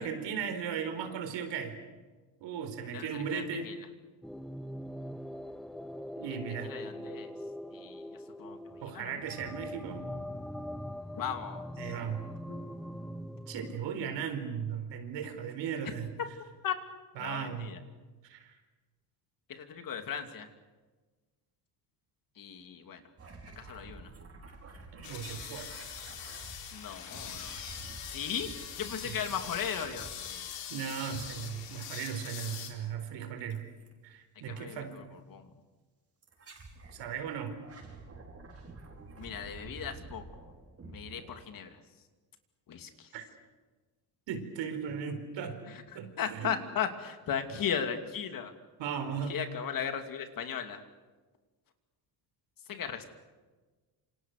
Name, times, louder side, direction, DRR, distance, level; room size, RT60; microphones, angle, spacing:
voice 1, 0.0-1.8 2.4-3.7 6.2-6.7 8.8-10.1 11.8-12.3 13.5-16.1 17.1-17.7 18.2-18.5 24.9-25.7 29.0-29.1 30.7-33.7 34.0-35.0 36.9-37.6 43.1-43.2 44.3-45.6 45.9-46.5 48.8-49.4, right 7 dB, 75° right, 8 dB, 4.5 m, -37 dB
voice 2, 2.9-3.7 6.7-7.3 7.7-8.0 8.4-8.6 8.9-9.2 11.1-11.9 12.5-12.6 16.6-16.7 17.2-17.8 19.5-20.5 22.4-23.0 23.6-24.1 26.7-27.6 28.0-28.5 28.8-30.5 34.5-35.0 35.3-35.5 39.2-40.5 40.8-41.8 42.7-43.1 45.7-45.8 46.2-48.5 49.3-50.8 52.7-53.0, left 8 dB, 50° left, 6 dB, 2.8 m, -37 dB
sound 1, 4.2-13.8, equal, ahead, 0.8 m, -42 dB
sound 2, 23.2-30.6 31.0-31.8 33.5-33.9 34.9-35.1 36.2-37.0 37.5-41.8, right 3 dB, 30° right, 5.4 m, -50 dB
sound 3, 25.0-32.7, left 8 dB, 75° left, 4.5 m, -43 dB
28.0 x 27.0 x 6.7 m, 1.3 s
cardioid pair, 135°, 44 cm